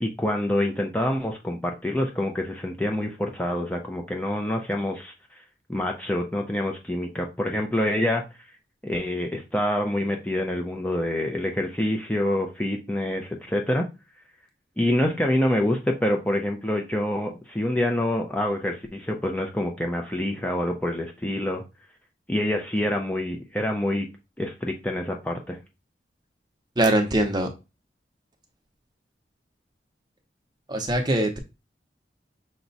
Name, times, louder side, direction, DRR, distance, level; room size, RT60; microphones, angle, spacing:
voice 1, 0.0-5.4 5.7-8.2 8.8-13.9 14.8-21.6 22.3-24.1 24.4-25.6, left 1 dB, 10° left, 0.5 m, -26 dB
voice 2, 26.8-27.5 30.7-31.4, right 1 dB, 25° right, 0.8 m, -22 dB
6.0 x 2.2 x 4.0 m
head